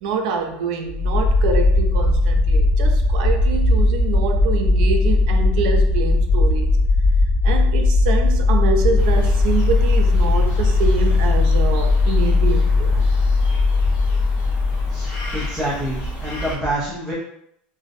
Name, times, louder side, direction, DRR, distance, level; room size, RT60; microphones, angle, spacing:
voice 1, 0.0-6.7 7.4-13.0, right 5 dB, 70° right, 4 dB, 0.4 m, -26 dB
sound 1, 0.9-15.7, left 3 dB, 25° left, 1.4 m, -18 dB
sound 2, 9.0-16.6, right 1 dB, 55° left, 0.7 m, -31 dB
voice 2, 14.9-17.1, right 1 dB, ahead, -9 dB, 0.4 m, -27 dB
2.5 x 2.0 x 2.4 m, 0.74 s
cardioid pair, 170°, 5 cm